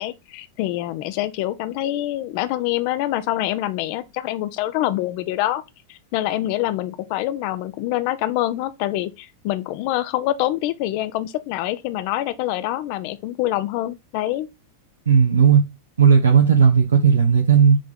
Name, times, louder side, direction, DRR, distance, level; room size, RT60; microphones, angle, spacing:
voice 1, 0.0-5.6 5.9-14.5, left 14 dB, 45° left, 0.6 m, -25 dB
voice 2, 15.1-15.6 16.0-17.8, right 6 dB, 70° right, 0.9 m, -14 dB
5.0 x 3.6 x 5.2 m
figure-of-eight pair, 90°, 0 cm